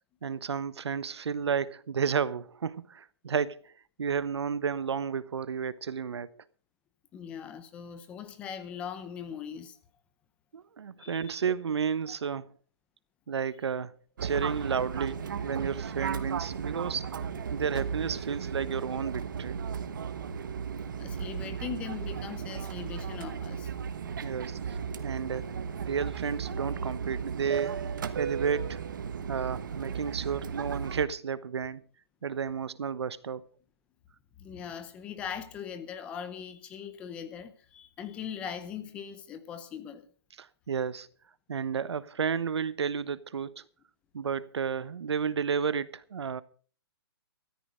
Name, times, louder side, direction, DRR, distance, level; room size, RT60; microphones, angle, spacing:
voice 1, 0.2-3.7 4.0-6.4 10.5-12.5 13.3-17.1 17.5-19.6 24.2-25.5 25.8-27.8 28.2-28.8 29.3-31.8 32.2-33.4 40.4-41.1 41.5-43.6 44.1-46.4, right 6 dB, 85° right, 1.1 m, -32 dB
voice 2, 7.1-9.8 11.0-11.4 20.8-23.7 34.4-40.1, left 8 dB, 10° left, 0.6 m, -40 dB
Fixed-wing aircraft airplane, 14.2-31.1, right 7 dB, 50° right, 1.3 m, -35 dB
14.0 x 13.5 x 5.1 m
hypercardioid pair, 175°, 14 cm